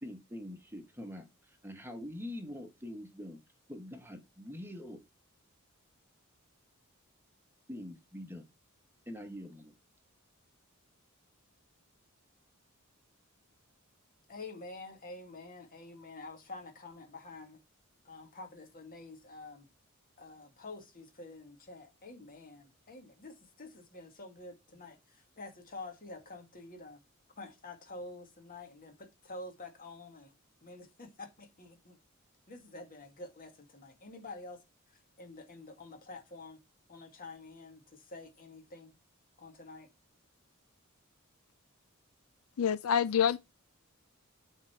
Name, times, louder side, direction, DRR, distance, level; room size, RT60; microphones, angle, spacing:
voice 1, 0.0-3.4 3.7-5.0 7.7-8.5 9.1-9.7, left 1 dB, 10° right, 1.2 m, -44 dB
voice 2, 14.3-17.6 18.0-19.7 20.2-27.0 27.4-30.3 30.6-32.0 32.5-34.6 35.2-36.6 36.9-38.9 39.4-39.9, left 2 dB, 40° left, 2.0 m, -48 dB
voice 3, 42.6-43.4, left 8 dB, 80° left, 0.4 m, -27 dB
8.2 x 3.8 x 4.4 m
head